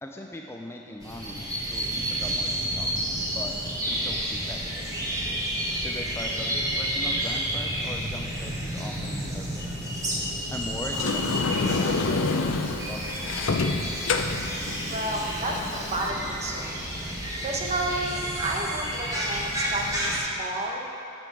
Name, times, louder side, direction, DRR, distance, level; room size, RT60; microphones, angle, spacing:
voice 1, 0.0-2.9 3.3-5.0 5.8-9.8 10.5-13.6, left 1 dB, 15° left, 1 dB, 0.4 m, -40 dB
sound 1, 1.0-20.2, right 1 dB, 15° right, 1.6 m, -30 dB
Sliding door, 10.9-16.1, left 3 dB, 70° left, 0.6 m, -28 dB
voice 2, 14.9-17.2 17.4-20.9, right 1 dB, 35° right, 0 dB, 1.1 m, -31 dB
9.3 x 7.0 x 6.0 m, 2.8 s
head